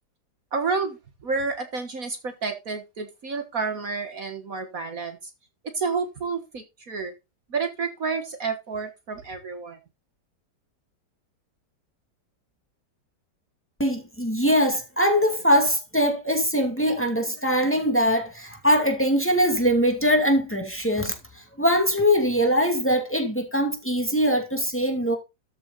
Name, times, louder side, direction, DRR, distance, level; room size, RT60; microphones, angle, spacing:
voice 1, 0.5-1.0 1.2-5.2 5.7-7.1 7.5-9.8, right 4 dB, 55° right, 1.8 m, -30 dB
voice 2, 13.8-21.1 21.6-25.2, equal, 5° left, 2.4 m, -22 dB
13.5 x 6.8 x 4.1 m
omnidirectional pair, 1.8 m